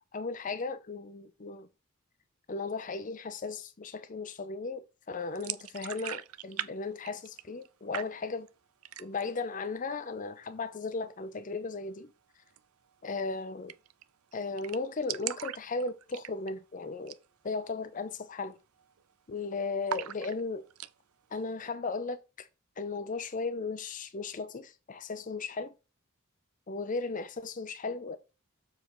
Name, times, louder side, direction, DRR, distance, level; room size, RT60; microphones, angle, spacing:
voice 1, 0.1-1.7 2.5-8.5 9.0-12.1 13.0-13.7 14.3-17.2 17.4-18.6 19.3-20.6 21.3-22.5 22.8-25.7 26.7-28.2, left 4 dB, 40° left, 0.6 m, -36 dB
sound 1, 5.4-6.7 7.0-7.7 7.9-8.5 8.8-9.4 9.7-9.8 10.1-10.8 12.5-12.6 12.9-13.0 13.2-13.3 13.7-14.0 14.3-14.4 14.6-16.6 17.0-17.3 17.6-17.7 18.3-18.5 18.8-19.4 19.9-20.9, right 11 dB, 90° right, 0.5 m, -39 dB
7.2 x 4.5 x 4.8 m
head